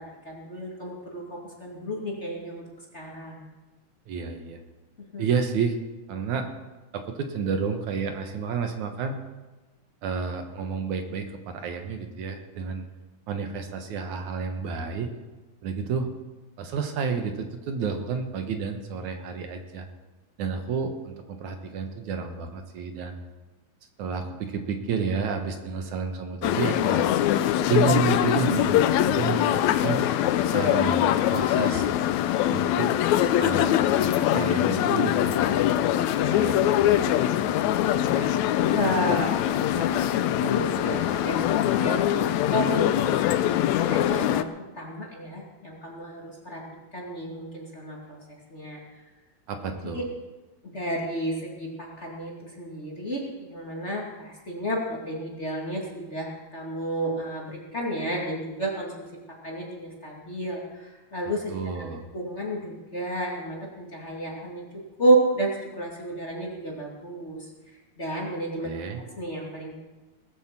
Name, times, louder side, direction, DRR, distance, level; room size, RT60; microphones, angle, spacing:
voice 1, 0.0-2.6 2.9-3.5 5.1-5.2 36.1-36.3 36.6-36.8 37.2-37.5 38.1-38.4 38.7-43.5 43.7-46.6 46.9-48.2 48.5-48.8 49.6-50.0 50.6-59.1 59.4-61.5 61.9-64.6 65.0-67.5 68.0-68.7 69.2-69.8, right 1 dB, 25° left, -3 dB, 2.5 m, -31 dB
voice 2, 4.1-4.6 5.2-5.8 6.1-6.5 6.9-9.2 10.0-12.9 13.3-15.1 15.6-16.1 16.6-19.9 20.4-23.1 24.0-27.1 27.7-30.0 30.5-31.8 32.5-32.9 33.4-35.7 36.2-37.1 49.5-50.1 61.5-62.1 68.6-69.0, right 6 dB, 70° right, 5 dB, 2.6 m, -30 dB
sound 1, 26.4-44.4, left 11 dB, 80° left, 1.8 m, -23 dB
19.0 x 8.2 x 7.5 m, 1.2 s
omnidirectional pair, 3.6 m